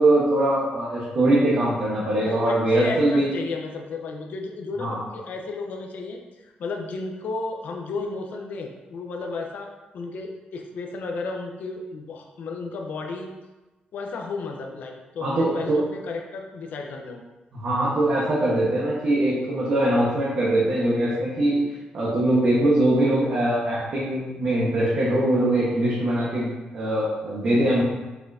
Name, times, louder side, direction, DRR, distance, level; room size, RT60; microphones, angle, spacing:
voice 1, 0.0-3.3 4.8-5.0 15.2-15.8 17.5-21.6 21.9-26.5 26.7-27.8, right 1 dB, 45° right, -7 dB, 1.3 m, -22 dB
voice 2, 2.2-9.7 9.9-13.3 13.9-17.2, left 3 dB, 65° left, 1 dB, 0.8 m, -33 dB
6.2 x 5.9 x 2.7 m, 1.1 s
wide cardioid pair, 180°, 3 cm